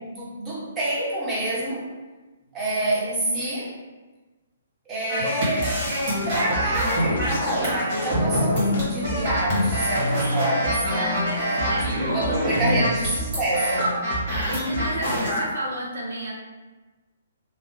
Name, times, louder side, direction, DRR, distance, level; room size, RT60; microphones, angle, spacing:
voice 1, 0.0-1.8 2.5-3.7 4.9-5.8 6.2-11.3 11.6-14.0, right 1 dB, 15° right, -6 dB, 0.8 m, -27 dB
sound 1, 5.1-15.5, equal, 35° right, 1.4 m, -25 dB
sound 2, 5.6-7.8 8.1-10.4 10.6-11.0 11.3-12.9 13.2-13.5 13.8-15.4, right 1 dB, 50° left, 0.4 m, -32 dB
voice 2, 10.9-12.8 14.5-16.3, right 1 dB, 65° right, -2 dB, 0.5 m, -32 dB
3.0 x 2.1 x 3.0 m, 1.2 s
figure-of-eight pair, 125°, 0 cm